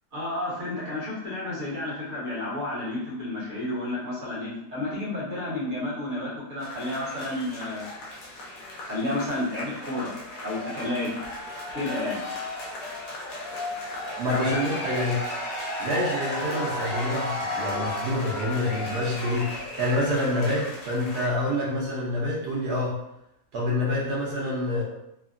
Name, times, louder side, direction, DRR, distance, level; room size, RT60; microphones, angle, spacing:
voice 1, 0.1-7.9 8.9-10.1 10.4-11.1 11.7-12.2 14.2-14.6, left 1 dB, 50° right, -8 dB, 1.5 m, -31 dB
sound 1, 6.6-21.3, left 2 dB, 70° left, 1.1 m, -34 dB
voice 2, 14.2-15.2 15.8-23.0 23.5-24.8, left 1 dB, 90° right, -5 dB, 1.3 m, -27 dB
3.2 x 2.2 x 2.4 m, 0.84 s
omnidirectional pair, 1.6 m